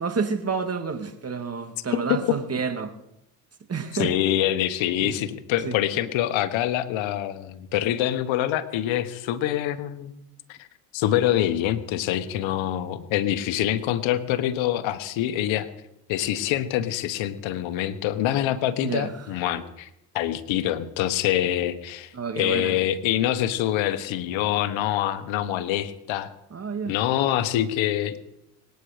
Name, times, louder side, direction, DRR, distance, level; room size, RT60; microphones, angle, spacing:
voice 1, 0.0-2.9 3.7-4.1 5.0-5.2 5.6-5.7 18.8-19.3 22.1-22.7 26.5-26.9, right 5 dB, 30° right, 2.0 m, -29 dB
voice 2, 4.0-10.1 10.5-10.7 10.9-15.7 16.1-19.9 20.1-26.3 26.9-28.2, left 12 dB, 75° left, 1.4 m, -25 dB
25.0 x 9.4 x 5.0 m
supercardioid pair, 75°, 47 cm